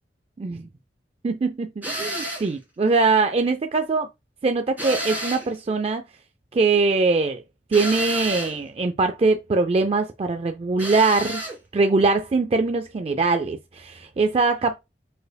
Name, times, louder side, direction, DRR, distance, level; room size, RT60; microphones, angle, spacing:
voice 1, 1.2-4.1 4.4-6.0 6.5-7.4 7.7-11.4 11.7-14.8, right 3 dB, 35° right, 0.3 m, -22 dB
sound 1, 1.8-2.5 4.8-5.6 7.7-8.6 10.8-11.6, equal, 10° right, 2.1 m, -30 dB
5.2 x 4.1 x 2.2 m
head